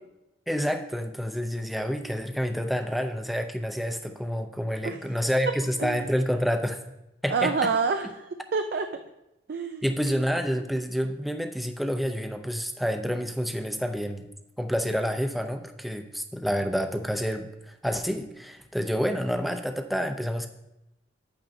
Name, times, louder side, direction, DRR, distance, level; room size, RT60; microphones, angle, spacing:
voice 1, 0.5-6.8 7.2-7.7 9.8-14.3 14.6-20.5, equal, ahead, 6 dB, 0.5 m, -28 dB
voice 2, 7.3-8.9 9.5-9.8, right 5 dB, 55° right, 6 dB, 0.4 m, -27 dB
10.5 x 8.7 x 2.6 m, 0.92 s
head